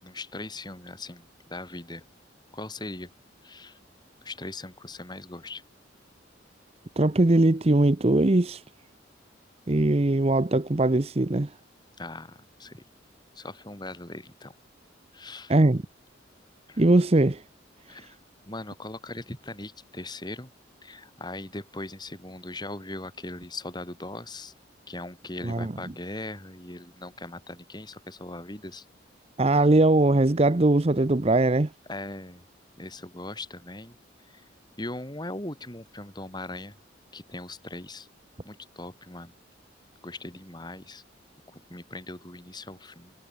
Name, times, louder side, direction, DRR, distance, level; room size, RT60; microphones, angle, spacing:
voice 1, 0.0-2.0 2.5-3.1 3.4-3.8 4.2-5.6 12.0-12.8 13.4-14.6 15.1-15.5 16.7-16.8 17.9-18.2 18.5-20.5 20.8-24.5 24.9-28.9 31.9-32.4 32.8-34.0 34.3-34.5 34.8-36.7 37.1-38.1 38.4-39.3 40.0-41.0 41.5-43.1, left 2 dB, 25° left, 3.7 m, -39 dB
voice 2, 7.0-8.6 9.7-11.5 15.5-15.8 16.8-17.4 25.4-25.7 29.4-31.7, right 2 dB, 30° right, 0.8 m, -21 dB
head